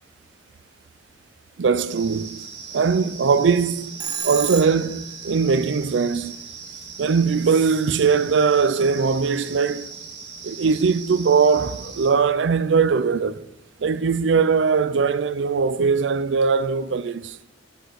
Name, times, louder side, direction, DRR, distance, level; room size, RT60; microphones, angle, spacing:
voice 1, 1.6-2.3 2.7-6.3 7.0-9.9 10.4-13.4 13.8-17.4, right 5 dB, 85° right, 0.5 m, -20 dB
sound 1, 1.9-12.1, right 5 dB, 70° right, 1.7 m, -39 dB
Telephone, 4.0-5.1, right 8 dB, 20° right, 0.5 m, -30 dB
7.9 x 6.1 x 6.4 m
head